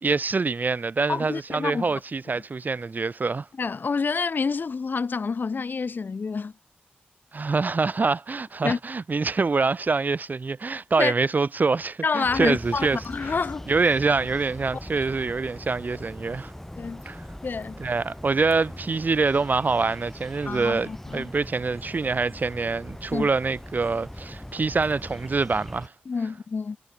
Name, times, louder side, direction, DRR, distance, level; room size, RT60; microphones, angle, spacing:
voice 1, 0.0-3.5 7.3-13.0 13.7-16.5 17.1-17.2 17.8-25.9, right 4 dB, 55° right, 2.3 m, -25 dB
voice 2, 1.1-2.0 3.6-6.5 8.6-8.8 11.0-11.1 12.0-13.7 16.8-17.0 17.4-17.8 20.5-21.3 23.1-23.3 26.1-26.8, left 4 dB, 65° left, 1.0 m, -28 dB
sound 1, 12.2-25.9, left 1 dB, 10° left, 3.0 m, -41 dB
cardioid pair, 55°, 4 cm